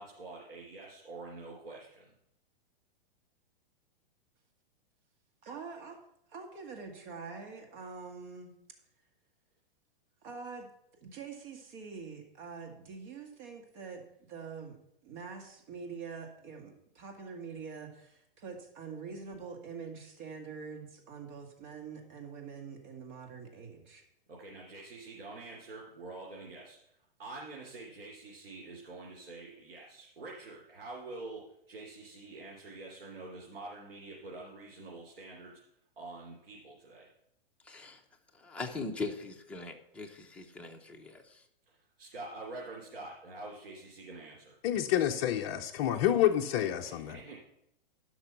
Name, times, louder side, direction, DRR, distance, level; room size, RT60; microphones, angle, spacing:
voice 1, 0.0-2.1 24.3-26.8 27.2-35.6 36.0-37.1 41.7-44.5 46.8-47.4, right 2 dB, 80° right, -4 dB, 3.3 m, -46 dB
voice 2, 5.4-6.0 6.3-8.6 10.2-10.7 11.0-14.8 15.0-24.0, right 5 dB, 50° right, 3 dB, 2.0 m, -45 dB
voice 3, 37.6-38.0 38.3-41.4, left 3 dB, 5° left, 0 dB, 0.8 m, -41 dB
voice 4, 44.6-47.2, left 11 dB, 35° left, 2 dB, 0.5 m, -28 dB
12.0 x 6.0 x 5.7 m, 0.78 s
hypercardioid pair, 145°, 29 cm